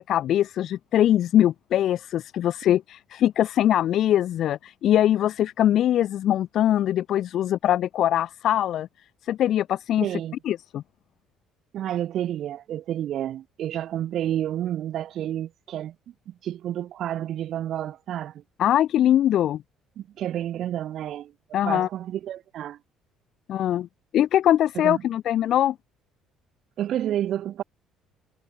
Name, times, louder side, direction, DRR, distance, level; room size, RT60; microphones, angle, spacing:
voice 1, 0.0-8.9 9.3-10.1 10.4-10.8 18.6-19.6 21.5-21.9 23.5-23.9 24.1-25.7, left 11 dB, 50° left, 0.9 m, -22 dB
voice 2, 10.0-10.4 11.7-15.9 16.3-18.4 20.0-21.3 21.6-22.8 24.8-25.0 26.8-27.6, right 11 dB, 50° right, 4.1 m, -30 dB
cardioid pair, 155°, 0 cm